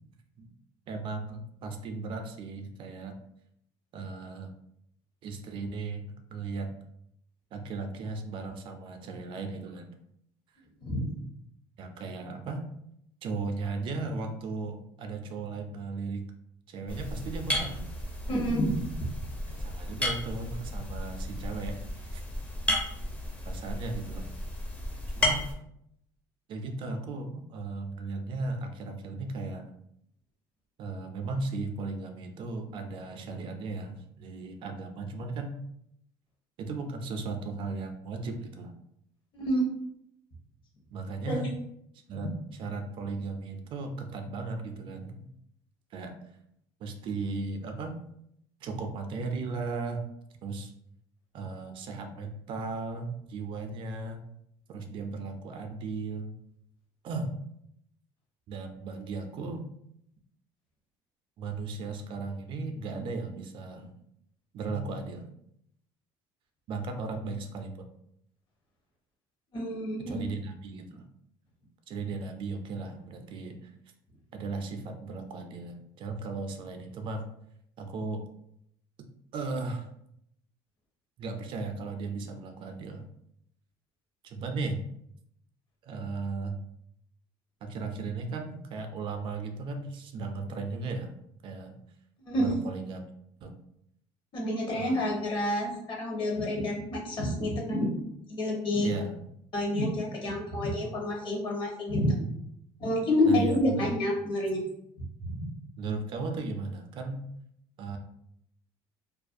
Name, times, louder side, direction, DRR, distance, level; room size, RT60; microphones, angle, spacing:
voice 1, 0.9-3.2 3.9-4.5 5.2-6.7 7.5-9.9 11.8-12.6 13.2-16.2 16.7-17.9 19.5-22.2 23.5-24.3 25.1-25.5 26.5-29.7 30.8-35.6 36.6-38.7 40.9-41.5 42.1-45.3 45.9-46.2 46.8-48.0 48.6-50.0 50.4-50.7 51.3-54.2 54.7-56.3 57.0-57.3 58.5-59.7 61.4-63.9 64.5-65.3 66.7-67.7 70.1-71.0 71.9-73.7 74.3-77.2 77.8-78.2 79.3-79.9 81.2-83.0 84.2-84.8 85.8-86.6 87.6-91.1 91.4-91.7 92.4-93.1 93.4-93.6 94.7-95.1 98.8-99.1 103.2-103.9 105.8-107.2 107.8-108.0, right 3 dB, 50° right, 6 dB, 0.4 m, -36 dB
sound 1, 16.9-25.5, left 1 dB, 10° left, 0.5 m, -33 dB
voice 2, 18.3-18.8 39.3-39.7 41.3-41.5 69.5-70.3 92.2-92.5 94.3-97.9 98.3-98.9 99.5-102.2 102.8-104.6 105.2-105.5, left 1 dB, 45° left, -2 dB, 0.9 m, -28 dB
2.4 x 2.2 x 2.5 m, 0.74 s
cardioid pair, 115°, 11 cm